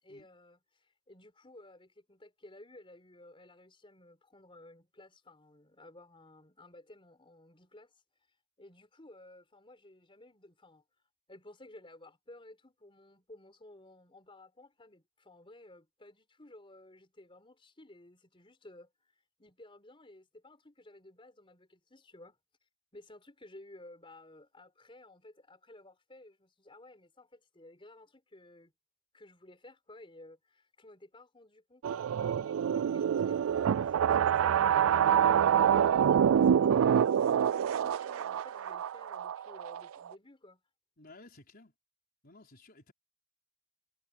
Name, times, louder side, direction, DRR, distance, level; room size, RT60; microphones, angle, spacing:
voice 1, 0.0-8.0 8.6-10.8 11.3-22.4 22.9-28.7 29.1-35.2 35.7-40.6, left 1 dB, 25° left, 4.3 m, -55 dB
sound 1, 31.8-40.1, right 8 dB, 75° right, 0.3 m, -26 dB
voice 2, 41.0-41.7 42.2-42.9, left 2 dB, 45° left, 4.5 m, -55 dB
head